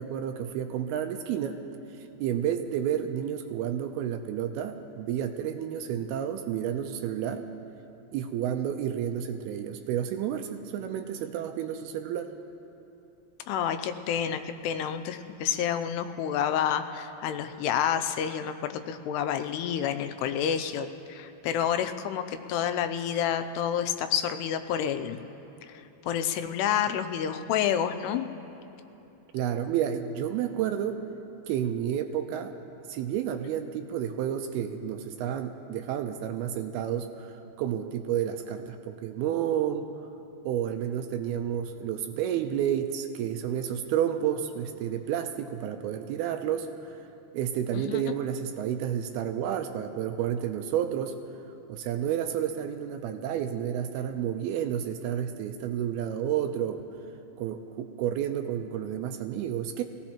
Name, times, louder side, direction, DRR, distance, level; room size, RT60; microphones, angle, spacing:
voice 1, 0.0-1.6 1.9-7.5 8.1-12.3 29.3-31.0 31.5-32.6 32.9-39.9 40.5-47.0 47.3-51.2 51.7-56.8 57.4-59.8, right 9 dB, 80° right, 7 dB, 2.4 m, -30 dB
voice 2, 13.5-25.2 25.7-28.3 47.7-48.2, left 9 dB, 85° left, 8 dB, 2.6 m, -29 dB
24.0 x 16.5 x 2.9 m, 2.9 s
omnidirectional pair, 4.8 m